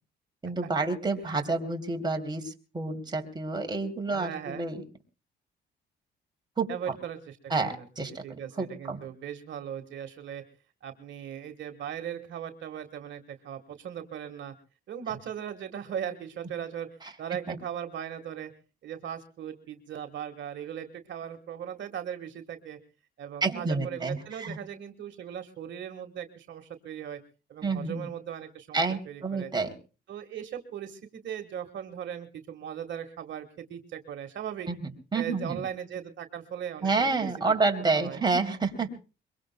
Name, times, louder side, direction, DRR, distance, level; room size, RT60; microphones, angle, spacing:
voice 1, 0.4-4.8 6.6-6.7 7.5-8.1 8.6-9.0 17.5-17.6 23.4-24.6 27.6-28.1 28.7-29.7 34.7-34.8 35.1-35.6 36.8-38.9, right 3 dB, 20° right, 3 dB, 3.0 m, -29 dB
voice 2, 4.1-4.7 6.7-10.4 10.8-14.5 14.9-16.9 17.2-18.5 18.8-22.8 23.2-27.2 27.5-29.5 30.1-34.7 35.1-37.3 37.8-38.2, right 9 dB, 65° right, 6 dB, 1.5 m, -38 dB
23.0 x 23.0 x 2.2 m, 0.34 s
cardioid pair, 90°, 20 cm